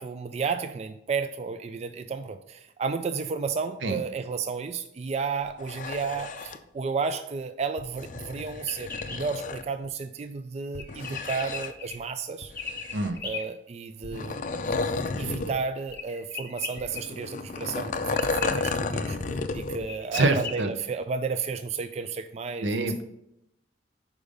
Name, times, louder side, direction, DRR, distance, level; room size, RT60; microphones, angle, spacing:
voice 1, 0.0-12.5 13.2-14.4 14.6-22.9, right 5 dB, 35° right, 10 dB, 0.3 m, -32 dB
sound 1, 5.5-6.6 7.8-9.6 10.7-11.9 12.4-13.3 14.0-15.6 15.9-16.0 16.8-19.8 20.2-20.3, left 3 dB, 45° left, 0.4 m, -32 dB
sound 2, 8.6-9.2 10.8-12.0 12.6-13.4 15.9-17.0 18.2-18.5 19.5-19.6 19.9-20.6, left 5 dB, 10° left, 1.1 m, -37 dB
voice 2, 20.1-20.7 22.6-23.0, right 2 dB, 85° right, 8 dB, 0.7 m, -25 dB
5.1 x 4.9 x 5.3 m, 0.80 s
head